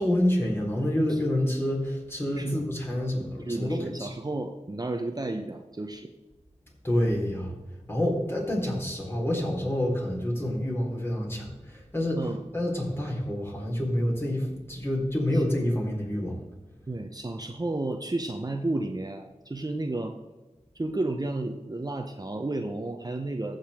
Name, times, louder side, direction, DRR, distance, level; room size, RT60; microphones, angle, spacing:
voice 1, 0.0-4.1 6.8-7.5 7.9-12.2 12.5-16.4, left 1 dB, 20° left, -2 dB, 3.9 m, -28 dB
voice 2, 3.5-6.1 12.2-12.4 15.3-15.4 16.9-20.2 20.7-23.6, right 2 dB, 35° right, 5 dB, 0.8 m, -32 dB
15.0 x 6.6 x 3.6 m, 1.1 s
wide cardioid pair, 50°, 12 cm